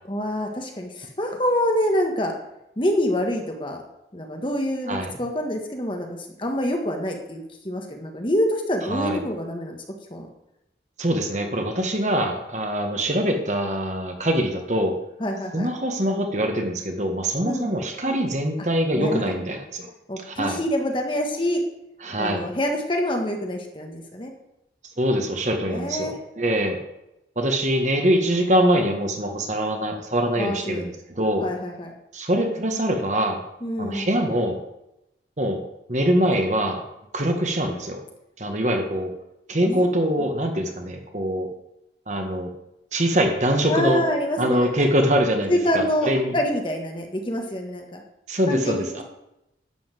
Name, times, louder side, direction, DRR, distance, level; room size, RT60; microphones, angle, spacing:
voice 1, 0.0-2.3 2.8-3.8 4.1-9.8 10.1-10.3 15.2-15.7 17.4-17.7 18.9-19.4 20.1-21.6 22.2-24.3 25.7-26.2 30.3-30.8 31.4-31.9 33.6-34.1 39.6-39.9 43.7-44.7 45.5-48.0 48.5-49.0, equal, 30° left, 2 dB, 1.5 m, -26 dB
voice 2, 8.9-9.2 11.0-14.9 15.5-19.9 20.2-20.6 22.0-22.4 25.0-26.8 27.3-31.5 32.1-33.4 33.8-34.6 35.4-35.6 35.9-36.8 37.1-38.0 38.4-39.1 39.5-41.5 42.1-42.5 42.9-44.0 44.4-46.3 48.3-49.0, equal, 40° right, 4 dB, 1.5 m, -23 dB
11.5 x 5.7 x 7.6 m, 0.87 s
head